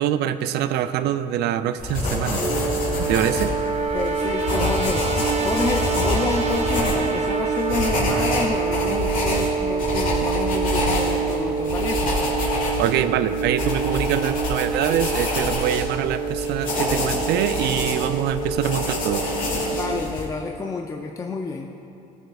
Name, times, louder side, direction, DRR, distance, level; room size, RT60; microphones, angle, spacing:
voice 1, 0.0-2.4 3.0-3.5 4.6-4.7 12.8-19.3, right 10 dB, 80° right, 12 dB, 0.4 m, -24 dB
sound 1, 1.8-20.3, left 2 dB, 55° left, 2.0 m, -27 dB
sound 2, 2.3-20.0, right 5 dB, 40° right, 0.8 m, -26 dB
voice 2, 3.9-12.1 19.7-21.7, left 3 dB, 20° left, 2 dB, 0.4 m, -29 dB
17.0 x 6.6 x 2.4 m, 2.8 s
cardioid pair, 110°, 17 cm